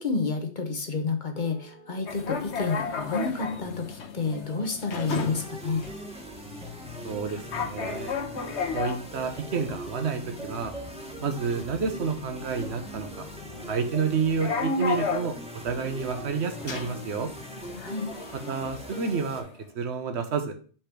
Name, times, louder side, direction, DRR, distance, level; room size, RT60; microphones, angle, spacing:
voice 1, 0.0-5.9 17.8-18.1, left 4 dB, 45° left, 5 dB, 1.1 m, -30 dB
sound 1, 1.3-3.9 4.3-4.7 5.0-5.3 5.7-7.0 7.3-8.7 9.0-10.1 10.4-12.4 12.6-13.2 13.6-13.7 13.9-18.6 18.9-19.4, right 3 dB, 35° right, 1.0 m, -46 dB
sound 2, 2.1-19.6, left 5 dB, 75° left, 1.2 m, -35 dB
sound 3, 5.0-19.4, right 1 dB, 5° right, 1.1 m, -42 dB
voice 2, 7.0-8.1 8.7-10.7 11.2-13.3 13.7-15.3 15.6-17.3 18.5-19.5 19.7-20.6, right 5 dB, 70° right, 7 dB, 1.2 m, -29 dB
5.1 x 4.4 x 5.9 m, 0.41 s
omnidirectional pair, 1.2 m